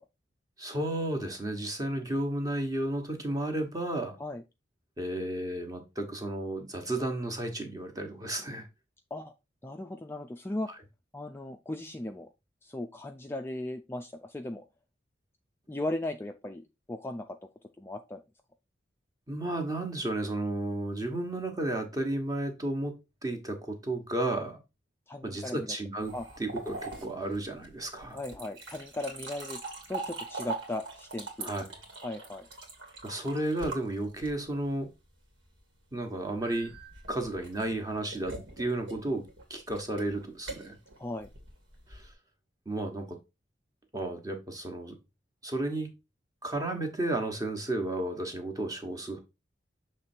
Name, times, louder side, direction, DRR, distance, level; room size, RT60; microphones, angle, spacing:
voice 1, 0.6-4.2 5.0-8.7 19.3-23.0 23.2-24.6 25.2-26.1 26.4-28.2 31.4-31.6 33.0-34.9 35.9-36.7 37.1-40.8 41.9-42.1 42.6-43.2 43.9-44.9 45.4-45.9 46.4-49.2, right 1 dB, 20° right, 1.2 m, -33 dB
voice 2, 9.6-10.7 11.1-12.3 12.6-14.6 15.7-17.4 17.8-18.2 25.1-25.7 26.1-26.3 28.1-29.6 29.9-31.5 32.0-32.5 41.0-41.3, left 1 dB, 10° left, 0.4 m, -37 dB
sound 1, 26.0-34.6 36.4-42.1, right 3 dB, 90° right, 2.1 m, -42 dB
6.8 x 3.2 x 4.3 m
head